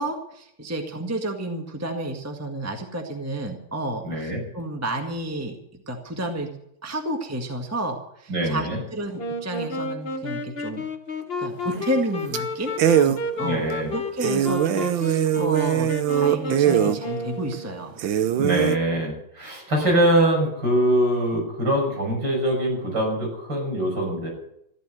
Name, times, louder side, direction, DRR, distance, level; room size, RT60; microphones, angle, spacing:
voice 1, 0.0-5.6 5.9-6.5 6.8-10.8 11.4-18.0, right 1 dB, 10° right, 3 dB, 1.5 m, -31 dB
voice 2, 4.0-4.4 8.3-8.8 13.4-13.9 18.4-24.3, right 1 dB, 55° right, 0 dB, 6.7 m, -23 dB
Wind instrument woodwind instrument, 9.2-17.9, left 2 dB, 30° left, 1.4 m, -31 dB
sound 1, 11.7-12.0 12.3-12.4 12.8-13.2 13.7-13.8 14.2-17.0 17.5-17.6 18.0-18.8, right 10 dB, 70° right, 1.6 m, -21 dB
14.5 x 12.5 x 7.7 m, 0.75 s
omnidirectional pair, 2.3 m